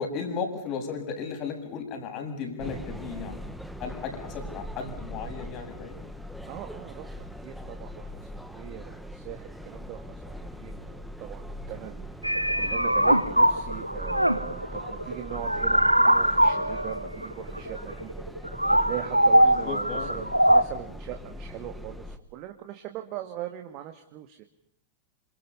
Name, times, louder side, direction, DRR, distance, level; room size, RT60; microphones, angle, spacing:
voice 1, 0.0-3.5 3.8-6.0 19.4-20.1, left 5 dB, 40° left, 4 dB, 7.3 m, -35 dB
sound 1, 2.6-22.2, equal, ahead, 1.7 m, -41 dB
voice 2, 6.5-18.1 18.7-24.4, right 13 dB, 40° right, 5 dB, 2.1 m, -40 dB
sound 2, 12.2-20.6, right 1 dB, 90° right, 0.9 m, -22 dB
27.5 x 27.0 x 5.6 m, 0.71 s
figure-of-eight pair, 90°, 0 cm